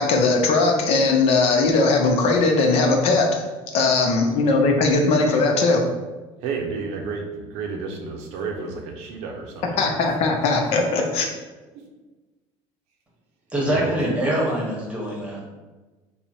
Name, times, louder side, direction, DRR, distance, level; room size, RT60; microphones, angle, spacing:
voice 1, 0.0-3.4 3.7-5.8 9.8-11.3, left 3 dB, 60° left, 2 dB, 0.6 m, -19 dB
voice 2, 6.4-9.8 13.7-14.0, right 4 dB, 70° right, 1 dB, 0.7 m, -31 dB
voice 3, 13.5-15.4, right 1 dB, 10° right, -3 dB, 1.0 m, -24 dB
3.5 x 2.1 x 4.2 m, 1.2 s
cardioid pair, 125°, 12 cm